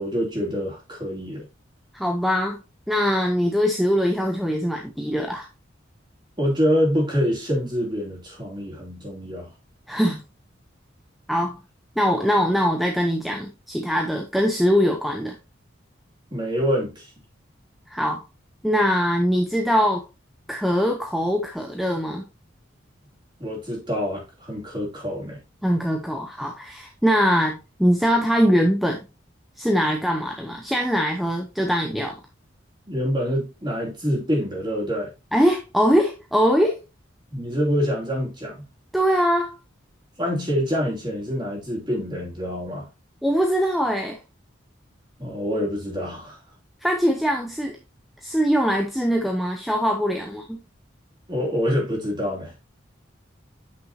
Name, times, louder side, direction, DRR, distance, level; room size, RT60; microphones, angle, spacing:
voice 1, 0.0-1.5 6.4-9.5 16.3-17.1 23.4-25.4 32.9-35.1 37.3-38.6 40.2-42.9 45.2-46.4 51.3-52.5, equal, 25° right, 2.9 m, -26 dB
voice 2, 1.9-2.6 2.9-5.5 9.9-10.2 11.3-11.6 12.0-15.4 17.9-18.2 18.6-20.0 20.5-22.2 25.6-29.0 29.6-32.2 35.3-36.8 38.9-39.5 43.2-44.2 46.8-47.8 48.2-50.6, equal, ahead, 0.7 m, -22 dB
8.4 x 6.0 x 2.8 m
head